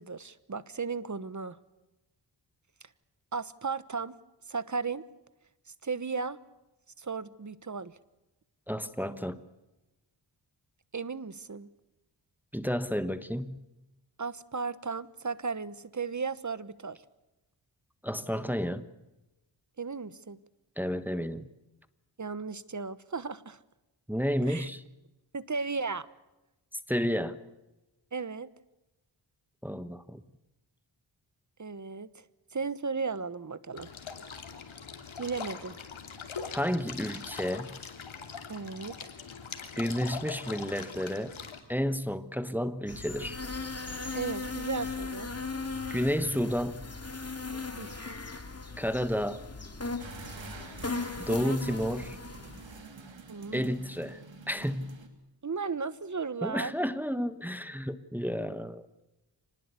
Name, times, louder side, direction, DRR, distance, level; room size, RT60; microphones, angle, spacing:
voice 1, 0.0-1.6 3.3-4.2 4.5-5.0 5.8-6.4 7.0-7.9 10.9-11.7 14.2-17.0 19.8-20.4 22.2-23.6 24.5-24.7 25.3-26.1 28.1-28.5 31.6-33.9 35.2-35.8 38.5-39.0 44.1-45.3 47.8-48.2 51.3-51.6 53.3-53.8 55.4-56.7, right 5 dB, 40° right, 16 dB, 1.2 m, -35 dB
voice 2, 8.7-9.4 12.5-13.6 18.0-18.8 20.8-21.5 24.1-24.8 26.9-27.4 29.6-30.2 36.5-37.8 39.8-41.3 41.7-43.4 45.9-46.8 48.8-49.4 51.2-52.2 53.5-54.2 54.5-55.0 56.4-58.9, equal, 5° right, 11 dB, 1.3 m, -31 dB
sound 1, 33.8-41.6, left 6 dB, 85° left, 2.7 m, -42 dB
sound 2, 42.9-52.8, left 3 dB, 30° left, 2.7 m, -38 dB
sound 3, 50.0-55.1, right 4 dB, 70° right, 3.1 m, -47 dB
25.5 x 19.5 x 8.3 m, 0.98 s
wide cardioid pair, 70°, 47 cm